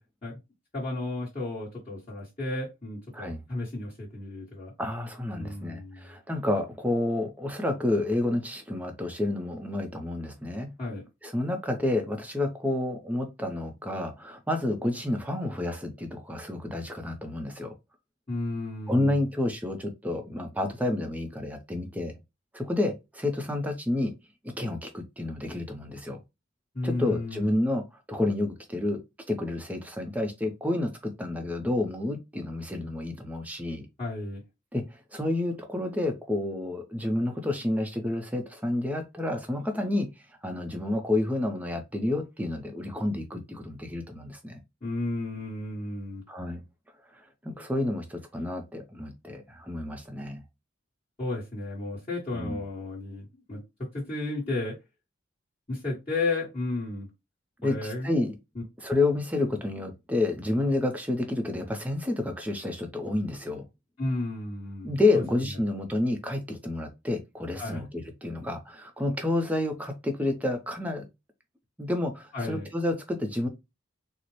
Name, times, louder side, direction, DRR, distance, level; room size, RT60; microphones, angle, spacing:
voice 1, 0.7-4.7 5.3-6.1 10.8-11.0 18.3-19.2 26.7-27.5 34.0-34.4 44.8-46.2 51.2-54.7 55.7-57.1 57.6-58.2 64.0-64.9 67.6-67.8 72.3-72.7, left 2 dB, 30° left, 1.3 m, -33 dB
voice 2, 4.8-10.7 11.2-17.7 18.9-22.2 22.5-24.1 24.4-26.2 26.8-29.0 29.3-33.9 34.7-44.6 46.3-46.6 47.1-50.4 52.3-52.6 57.6-58.3 58.8-63.6 64.8-71.1 71.8-73.5, left 2 dB, 10° right, 0.6 m, -29 dB
4.1 x 2.1 x 3.1 m
head